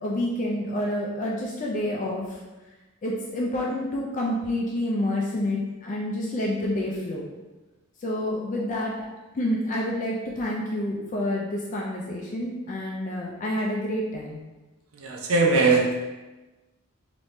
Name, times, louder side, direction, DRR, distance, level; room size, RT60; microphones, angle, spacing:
voice 1, 0.0-2.4 3.0-7.2 8.0-8.9 9.3-14.4, left 1 dB, 35° left, -2 dB, 0.4 m, -28 dB
voice 2, 14.9-16.0, right 3 dB, 70° right, 1 dB, 0.6 m, -21 dB
3.5 x 2.9 x 2.6 m, 1.1 s
head